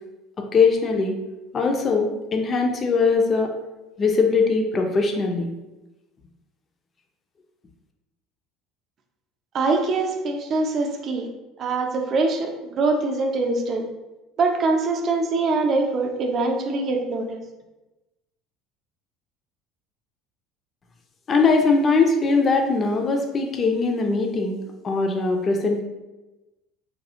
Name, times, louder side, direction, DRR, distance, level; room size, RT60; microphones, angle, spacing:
voice 1, 0.4-1.2 1.5-3.5 4.0-5.5 21.3-25.8, left 4 dB, 30° left, 3 dB, 0.4 m, -21 dB
voice 2, 9.5-11.3 11.6-13.9 14.4-17.4, right 3 dB, 40° right, 3 dB, 0.5 m, -23 dB
3.2 x 2.3 x 2.7 m, 1.0 s
figure-of-eight pair, 60°, 0 cm